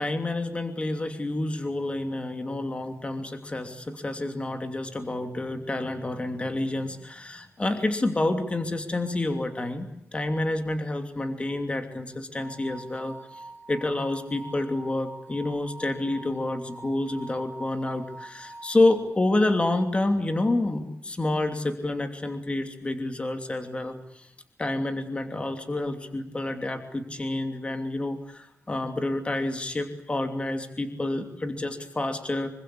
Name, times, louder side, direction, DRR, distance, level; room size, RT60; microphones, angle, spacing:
voice 1, 0.0-13.4 13.7-24.3 24.6-32.5, left 2 dB, 25° left, 6 dB, 2.9 m, -28 dB
sound 1, 12.3-18.9, right 2 dB, 45° right, 4.5 m, -45 dB
26.5 x 24.5 x 8.5 m, 0.77 s
wide cardioid pair, 165°, 5 cm